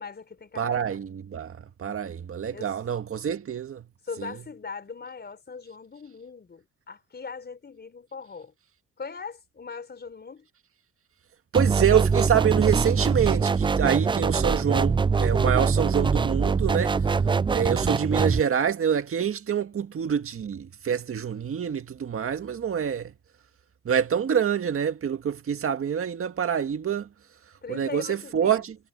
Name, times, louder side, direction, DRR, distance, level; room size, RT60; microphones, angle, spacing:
voice 1, 0.0-1.0 2.5-2.8 4.0-8.5 9.0-10.5 27.6-28.6, left 5 dB, 35° left, 4.9 m, -40 dB
voice 2, 0.6-3.8 11.5-17.0 17.5-23.1 23.9-27.1 27.7-28.8, right 8 dB, 45° right, 1.9 m, -26 dB
sound 1, 11.5-18.4, right 5 dB, 15° right, 0.3 m, -23 dB
cardioid pair, 90°, 30 cm